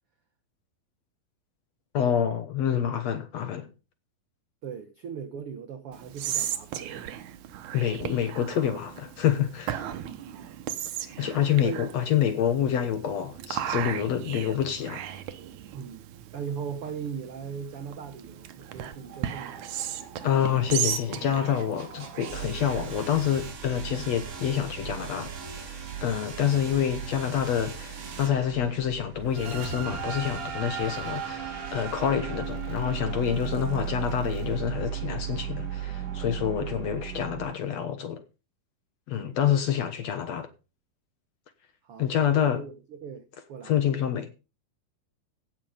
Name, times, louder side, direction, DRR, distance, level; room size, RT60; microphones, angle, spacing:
voice 1, 1.9-3.7 7.7-9.9 11.2-15.0 19.3-19.4 20.2-38.2 39.1-40.5 42.0-42.6 43.6-44.3, left 9 dB, 60° left, 1.9 m, -27 dB
voice 2, 4.6-7.0 10.3-10.6 11.6-11.9 15.7-19.7 33.4-33.6 36.6-36.7 39.1-39.4 41.8-43.7, right 7 dB, 80° right, 1.2 m, -39 dB
Whispering, 5.9-23.5, right 10 dB, 65° right, 2.2 m, -36 dB
sound 1, 18.7-37.5, right 8 dB, 45° right, 2.6 m, -37 dB
16.5 x 6.7 x 5.1 m
omnidirectional pair, 4.2 m